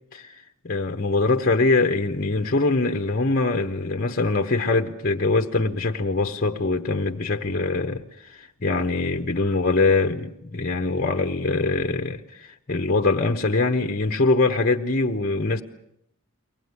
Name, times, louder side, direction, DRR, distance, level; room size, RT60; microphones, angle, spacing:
voice 1, 0.1-15.6, left 3 dB, 45° left, 1.1 m, -23 dB
23.5 x 18.0 x 9.7 m
head